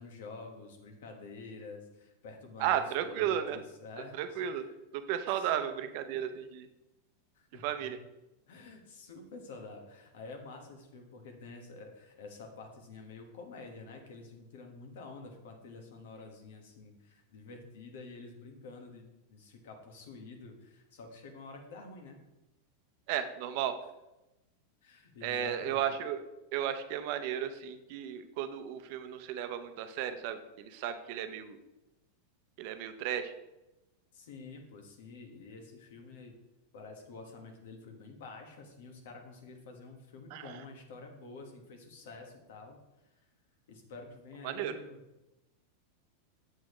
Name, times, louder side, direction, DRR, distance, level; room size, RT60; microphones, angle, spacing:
voice 1, 0.0-4.7 5.3-5.6 7.3-7.9 8.5-22.2 24.8-25.8 34.1-36.3 36.7-42.8 43.7-45.0, left 3 dB, 75° left, 3 dB, 1.4 m, -49 dB
voice 2, 2.6-3.6 4.2-4.6 4.9-6.7 7.6-8.0 23.1-23.7 25.2-26.2 26.5-31.6 32.6-33.3 40.3-40.5 44.4-44.8, right 10 dB, 55° right, 9 dB, 0.6 m, -34 dB
7.3 x 6.3 x 3.1 m, 0.99 s
supercardioid pair, 135°, 0 cm